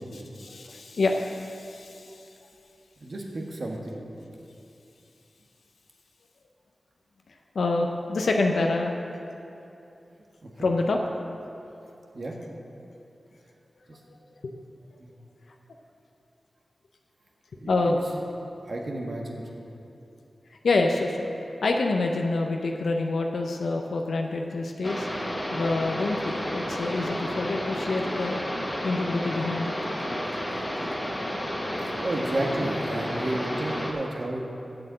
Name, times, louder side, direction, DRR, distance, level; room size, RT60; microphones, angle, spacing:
voice 1, 0.4-2.1 7.5-8.9 10.6-11.0 14.4-14.5 17.7-18.0 20.6-21.3 21.6-25.1 25.5-28.4 28.8-29.7, left 3 dB, 85° left, 2 dB, 0.6 m, -26 dB
voice 2, 3.0-4.1 10.4-10.7 12.1-12.3 13.9-14.0 15.0-15.1 17.5-18.0 18.7-19.7 31.8-34.5, right 1 dB, 60° right, 0 dB, 1.5 m, -32 dB
sound 1, 24.8-33.9, equal, 15° left, 1.6 m, -31 dB
8.0 x 7.6 x 7.5 m, 2.8 s
cardioid pair, 60°, 0 cm